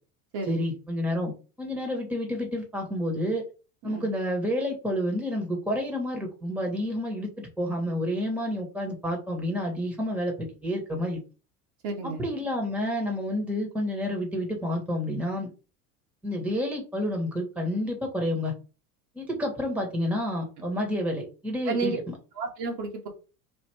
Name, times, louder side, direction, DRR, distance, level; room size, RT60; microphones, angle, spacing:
voice 1, 0.5-1.3 1.6-3.4 3.8-11.2 12.0-15.5 16.2-18.5 19.1-22.1, left 1 dB, 5° right, 1 dB, 1.6 m, -29 dB
voice 2, 11.8-12.2 21.6-22.0 22.4-23.1, right 4 dB, 55° right, 1 dB, 1.6 m, -31 dB
3.5 x 2.7 x 4.5 m, 0.33 s
hypercardioid pair, 90°, 46 cm